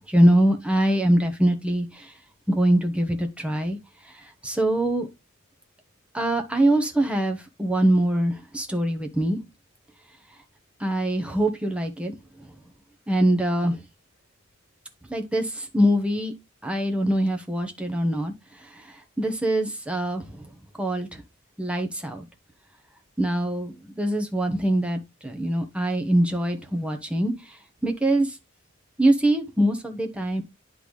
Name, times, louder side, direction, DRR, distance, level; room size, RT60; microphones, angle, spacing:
voice 1, 0.1-2.1 2.5-3.8 4.4-5.1 6.1-9.4 10.8-12.1 13.1-13.8 15.1-16.3 16.6-18.3 18.6-20.5 20.8-21.2 21.6-22.3 23.2-28.4 29.0-30.4, right 1 dB, 5° right, 1.0 m, -23 dB
10.0 x 4.0 x 3.1 m
head